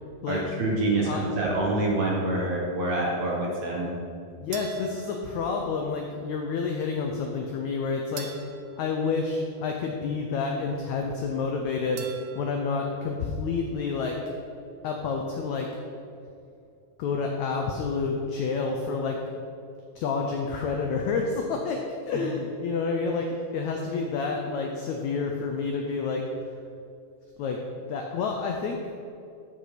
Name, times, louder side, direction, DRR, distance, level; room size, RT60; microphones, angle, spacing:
voice 1, 0.3-4.0 22.1-22.3, right 2 dB, 60° right, -2 dB, 2.1 m, -26 dB
voice 2, 4.4-8.3 8.8-12.1 12.3-14.2 14.8-15.7 17.0-19.2 19.9-26.5 27.4-27.6 27.9-28.8, left 4 dB, 90° left, 2 dB, 1.6 m, -29 dB
sound 1, 4.5-6.0 8.2-10.0 12.0-13.1, right 6 dB, 75° right, 2.5 m, -44 dB
13.0 x 5.4 x 5.0 m, 2.5 s
omnidirectional pair, 4.2 m